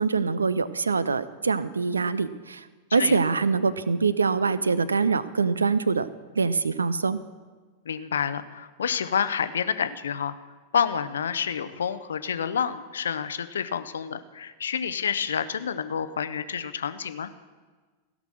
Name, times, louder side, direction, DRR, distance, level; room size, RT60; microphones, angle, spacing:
voice 1, 0.0-2.6 2.9-6.1 6.4-7.2, right 4 dB, 75° right, 16 dB, 0.4 m, -24 dB
voice 2, 7.9-10.3 10.7-17.3, left 7 dB, 65° left, 13 dB, 0.6 m, -28 dB
16.0 x 6.1 x 6.4 m, 1.4 s
figure-of-eight pair, 90°, 0 cm